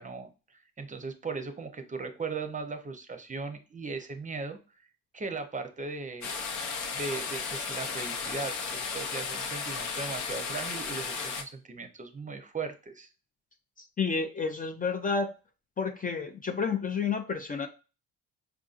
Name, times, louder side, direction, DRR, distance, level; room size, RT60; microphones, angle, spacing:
voice 1, 0.0-4.6 5.1-6.4 6.9-13.1, right 4 dB, 25° right, 7 dB, 0.6 m, -38 dB
sound 1, 6.2-11.4, left 5 dB, 70° left, 0.7 m, -34 dB
voice 2, 14.0-15.3 15.8-17.7, left 5 dB, 30° left, 6 dB, 0.4 m, -30 dB
4.6 x 2.6 x 2.4 m, 0.32 s
cardioid pair, 90°, 30 cm